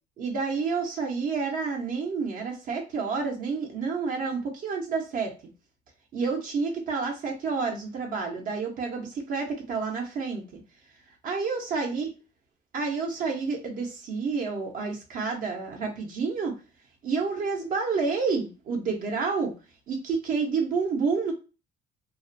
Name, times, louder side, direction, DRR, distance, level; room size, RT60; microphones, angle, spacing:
voice 1, 0.2-5.3 6.1-10.6 11.2-12.1 12.7-16.6 17.0-19.5 19.9-21.3, right 4 dB, 55° right, 1 dB, 0.6 m, -29 dB
2.3 x 2.1 x 2.5 m, 0.31 s
cardioid pair, 110°, 17 cm